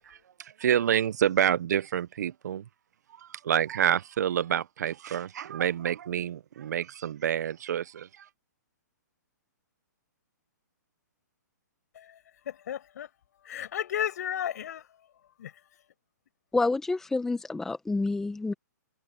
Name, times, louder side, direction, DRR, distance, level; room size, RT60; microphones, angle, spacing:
voice 1, 0.1-2.6 3.2-8.3, right 9 dB, 65° right, 0.7 m, -28 dB
voice 2, 12.5-13.1 13.4-14.9 15.4-15.5, left 10 dB, 60° left, 7.2 m, -33 dB
voice 3, 16.5-18.5, left 3 dB, 5° left, 0.9 m, -28 dB
hypercardioid pair, 155°, 10 cm